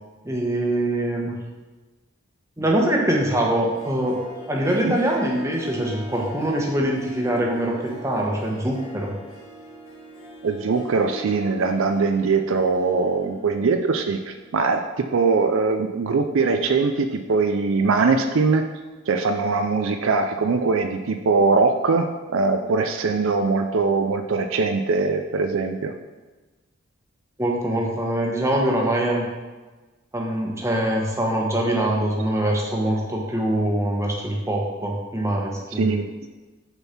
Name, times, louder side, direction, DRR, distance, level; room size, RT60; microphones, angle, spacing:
voice 1, 0.2-1.4 2.6-4.2 4.5-9.1 27.4-29.3 30.1-36.0, right 1 dB, 15° right, -1 dB, 1.1 m, -23 dB
Harp, 3.6-14.8, equal, 70° left, 1.5 m, -42 dB
voice 2, 10.4-18.6 19.1-25.9 35.7-36.1, right 4 dB, 65° right, 6 dB, 0.4 m, -21 dB
6.7 x 4.5 x 5.8 m, 1.2 s
head